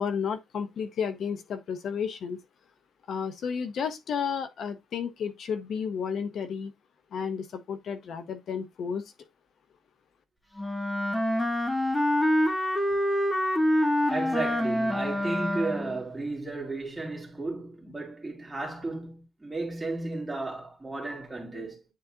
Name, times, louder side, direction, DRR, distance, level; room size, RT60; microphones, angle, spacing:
voice 1, 0.0-2.4 3.1-6.7 7.1-9.0, left 6 dB, 65° left, 0.8 m, -32 dB
Wind instrument woodwind instrument, 10.6-16.0, left 1 dB, 15° left, 1.3 m, -26 dB
voice 2, 14.1-21.8, right 2 dB, 10° right, 2.8 m, -34 dB
9.3 x 4.0 x 2.8 m
cardioid pair, 125°, 0 cm